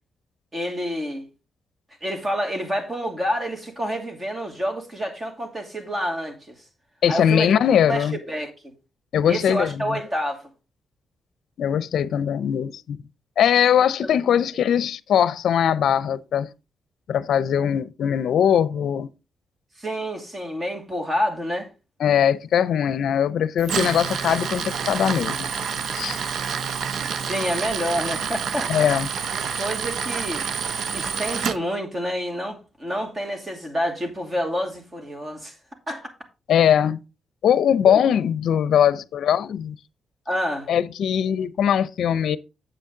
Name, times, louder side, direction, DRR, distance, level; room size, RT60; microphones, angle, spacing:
voice 1, 0.5-1.3 2.0-6.5 7.1-7.5 7.9-8.5 9.3-10.5 14.0-14.2 19.8-21.7 27.2-28.7 29.3-30.5 30.9-35.5 35.9-36.1 37.9-38.0 40.3-40.7, equal, 25° right, 2.6 m, -28 dB
voice 2, 7.0-8.2 9.1-9.9 11.6-13.0 13.4-16.5 17.1-19.1 22.0-25.5 25.9-26.2 28.7-29.1 36.5-37.0 37.4-39.7 40.7-42.4, left 9 dB, 75° left, 0.5 m, -21 dB
Tools, 23.6-31.6, right 6 dB, 70° right, 0.7 m, -28 dB
9.0 x 7.7 x 3.8 m
cardioid pair, 110°, 0 cm